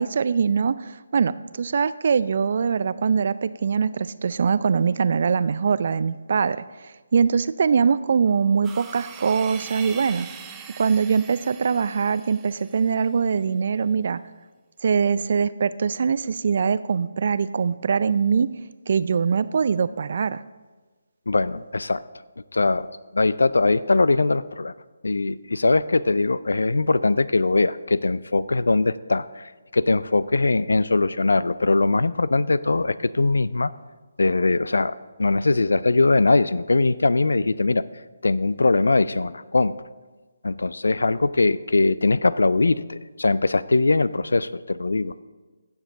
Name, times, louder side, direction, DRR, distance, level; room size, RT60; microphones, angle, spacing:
voice 1, 0.0-6.6 7.1-10.3 10.8-14.2 14.8-18.5 18.9-20.4, right 6 dB, 50° right, 16 dB, 0.4 m, -22 dB
sound 1, 8.6-13.1, right 7 dB, 15° right, 0.7 m, -42 dB
voice 2, 21.3-22.0 22.5-22.9 23.1-24.7 25.0-33.7 34.2-37.8 38.2-39.7 40.4-45.2, left 3 dB, 70° left, 17 dB, 0.4 m, -21 dB
16.0 x 7.1 x 3.8 m, 1.3 s
figure-of-eight pair, 150°, 0 cm